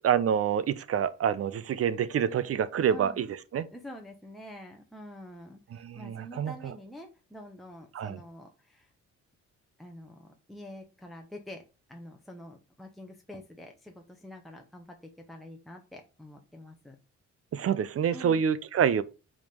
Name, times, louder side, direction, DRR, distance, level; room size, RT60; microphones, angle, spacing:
voice 1, 0.0-3.3 3.5-3.7 5.8-6.5 7.9-8.2 17.5-19.0, right 8 dB, 50° right, 0.6 m, -27 dB
voice 2, 2.9-3.2 3.7-8.9 9.8-17.0 18.1-18.4, left 1 dB, ahead, 0.9 m, -47 dB
4.9 x 3.7 x 5.2 m
cardioid pair, 90°, 30 cm